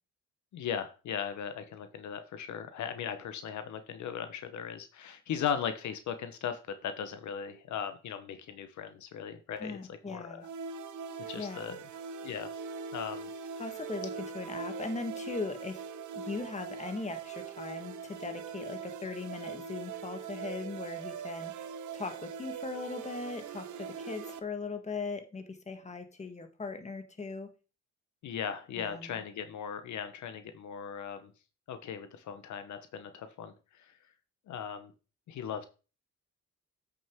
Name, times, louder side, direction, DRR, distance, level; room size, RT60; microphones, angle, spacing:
voice 1, 0.5-10.5 11.3-11.8 12.2-12.5 12.9-13.3 28.2-31.3 31.7-33.9 34.5-34.9 35.3-35.7, left 8 dB, 70° left, 1.1 m, -38 dB
voice 2, 9.6-10.5 11.4-11.8 13.6-15.8 16.1-27.5 28.8-29.2, left 4 dB, 25° left, 1.4 m, -39 dB
sound 1, 10.4-24.4, right 6 dB, 75° right, 0.9 m, -41 dB
8.5 x 6.3 x 3.6 m
cardioid pair, 90°, 30 cm